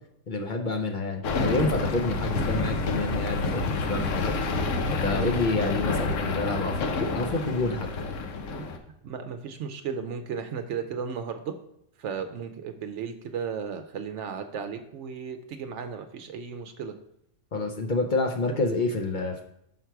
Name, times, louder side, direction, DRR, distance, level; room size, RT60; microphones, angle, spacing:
voice 1, 0.3-7.9 17.5-19.4, left 3 dB, 50° left, 2 dB, 0.6 m, -28 dB
sound 1, 1.2-8.8, left 3 dB, 85° left, 1.1 m, -28 dB
voice 2, 9.0-11.5 12.0-16.9, right 6 dB, 75° right, 7 dB, 0.9 m, -35 dB
5.7 x 5.7 x 4.6 m, 0.75 s
omnidirectional pair, 1.3 m